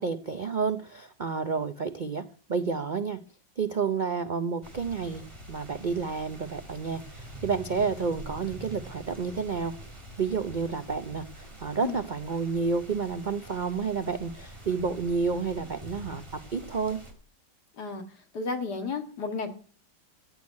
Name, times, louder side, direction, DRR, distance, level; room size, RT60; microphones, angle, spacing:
voice 1, 0.0-3.2 3.6-9.7 10.2-17.0, right 5 dB, 85° right, 10 dB, 0.4 m, -30 dB
sound 1, 4.6-17.1, right 1 dB, 15° right, 3.4 m, -45 dB
voice 2, 18.3-19.5, left 4 dB, 65° left, 6 dB, 2.4 m, -32 dB
15.0 x 6.4 x 9.6 m, 0.43 s
omnidirectional pair, 1.9 m